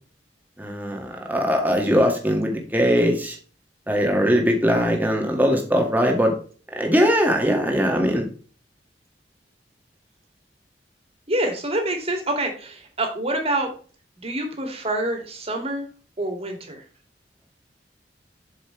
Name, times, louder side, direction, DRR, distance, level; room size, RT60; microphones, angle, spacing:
voice 1, 0.6-3.4 3.9-6.4 6.7-8.3, equal, 10° right, 2 dB, 2.1 m, -20 dB
voice 2, 1.9-2.4 11.3-13.7 14.2-15.9 16.2-16.8, right 1 dB, 35° right, 3 dB, 2.5 m, -27 dB
7.6 x 7.0 x 3.3 m, 0.39 s
head